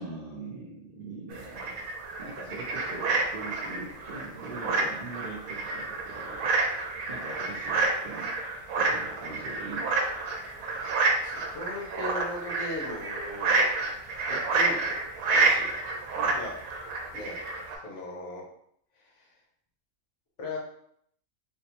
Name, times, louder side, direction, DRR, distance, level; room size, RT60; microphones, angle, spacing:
voice 1, 0.0-1.8 2.2-8.3 8.8-9.9 16.1-16.3, right 3 dB, 55° right, -5 dB, 0.6 m, -42 dB
sound 1, 1.3-17.8, right 3 dB, 80° right, 1.0 m, -29 dB
voice 2, 11.2-13.7 14.3-15.0 15.3-15.8 16.3-16.5 17.1-17.5 17.8-18.4 19.0-19.3 20.4-20.6, left 2 dB, 60° left, -3 dB, 1.1 m, -38 dB
3.4 x 2.1 x 2.9 m, 0.69 s
omnidirectional pair, 1.4 m